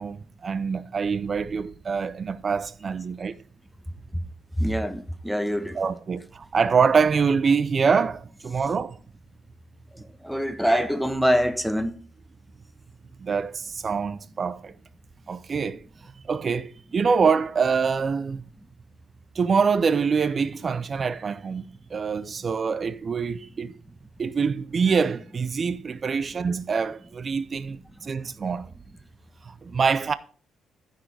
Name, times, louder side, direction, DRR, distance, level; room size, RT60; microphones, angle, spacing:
voice 1, 0.0-3.4 5.7-9.0 13.2-14.7 15.3-18.4 19.4-23.8 24.2-28.7 29.5-30.1, right 5 dB, 40° right, 0.5 m, -25 dB
voice 2, 4.6-5.8 9.9-11.9, equal, ahead, 1.1 m, -24 dB
14.5 x 6.5 x 3.4 m
cardioid pair, 90°, 0 cm